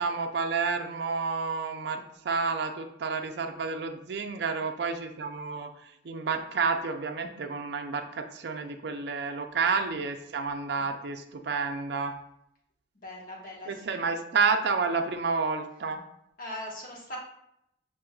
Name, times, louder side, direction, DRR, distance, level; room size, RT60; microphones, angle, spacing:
voice 1, 0.0-12.2 13.7-16.0, right 4 dB, 60° right, 5 dB, 0.5 m, -30 dB
voice 2, 12.9-14.0 16.4-17.2, left 1 dB, 45° left, -3 dB, 1.2 m, -40 dB
7.3 x 2.9 x 2.3 m, 0.78 s
head